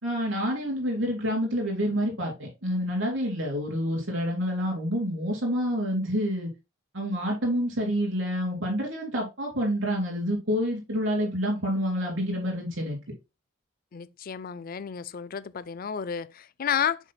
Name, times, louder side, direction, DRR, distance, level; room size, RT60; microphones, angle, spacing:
voice 1, 0.0-6.5 6.9-13.0, equal, 65° right, 3.7 m, -28 dB
voice 2, 13.9-17.0, left 8 dB, 45° left, 0.4 m, -31 dB
7.2 x 6.8 x 2.2 m
head